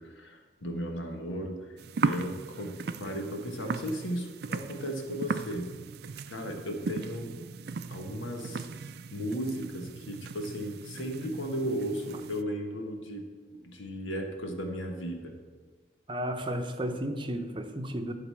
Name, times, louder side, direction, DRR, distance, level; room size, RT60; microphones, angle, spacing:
voice 1, 0.0-5.7 6.3-7.6 7.9-8.7 9.1-13.2 13.6-15.4, equal, 85° left, 3 dB, 1.4 m, -35 dB
sound 1, 1.8-12.4, right 4 dB, 55° right, 0.4 m, -37 dB
voice 2, 16.1-18.1, right 1 dB, 25° right, 6 dB, 0.7 m, -33 dB
11.5 x 4.1 x 7.5 m, 1.4 s
head